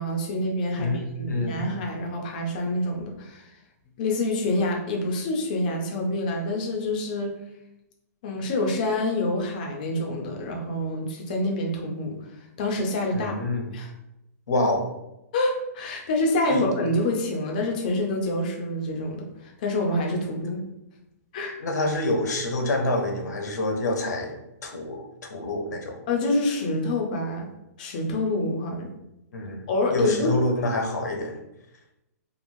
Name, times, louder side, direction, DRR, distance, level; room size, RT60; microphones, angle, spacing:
voice 1, 0.0-3.5 4.0-7.3 8.2-12.2 12.6-13.3 13.7-13.9 15.3-20.6 21.3-21.6 26.1-27.5 27.8-28.9 29.7-30.4, left 1 dB, 30° left, 1 dB, 0.5 m, -27 dB
voice 2, 0.8-1.7 13.1-13.7 14.5-14.8 16.5-16.7 21.6-24.4 24.6-25.0 25.3-26.0 29.3-31.3, left 2 dB, 85° left, 2 dB, 0.8 m, -27 dB
3.0 x 2.5 x 2.6 m, 0.88 s
hypercardioid pair, 175°, 9 cm